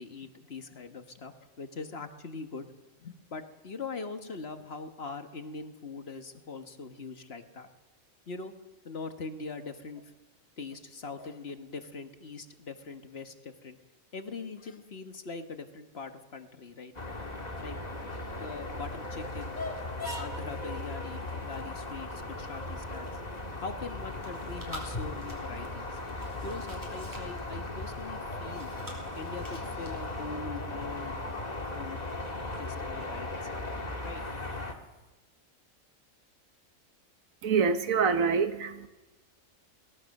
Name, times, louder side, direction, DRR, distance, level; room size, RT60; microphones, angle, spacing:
voice 1, 0.0-2.7 3.0-7.7 8.3-8.5 8.8-10.1 10.6-13.8 14.1-17.1 17.6-17.9 18.4-19.6 20.1-23.2 23.6-26.0 26.4-28.7 29.2-31.1 31.7-32.1 32.6-33.7 34.0-34.2, left 4 dB, 50° left, 7 dB, 1.6 m, -42 dB
sound 1, 16.9-34.7, left 2 dB, 30° left, 1.9 m, -37 dB
Chewing mastication, 23.8-30.5, equal, 15° right, 4.5 m, -49 dB
voice 2, 37.4-38.9, right 5 dB, 75° right, 10 dB, 1.5 m, -26 dB
22.0 x 18.5 x 6.5 m, 1.1 s
omnidirectional pair, 1.4 m